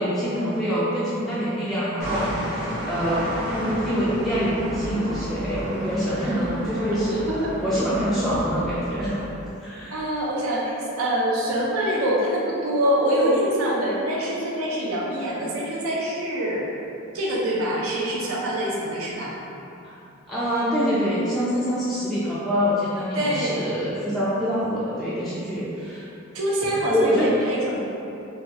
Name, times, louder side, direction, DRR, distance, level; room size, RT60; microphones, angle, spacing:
voice 1, 0.0-7.3 7.6-9.2 9.6-10.1 19.8-19.9 20.3-26.1 26.8-27.3, equal, ahead, -11 dB, 0.3 m, -25 dB
sound 1, 2.0-9.3, equal, 45° right, 0.9 m, -31 dB
voice 2, 9.9-16.7 17.1-19.3 23.1-23.6 26.3-27.9, right 1 dB, 85° right, -4 dB, 0.6 m, -25 dB
3.3 x 2.3 x 2.8 m, 2.8 s
head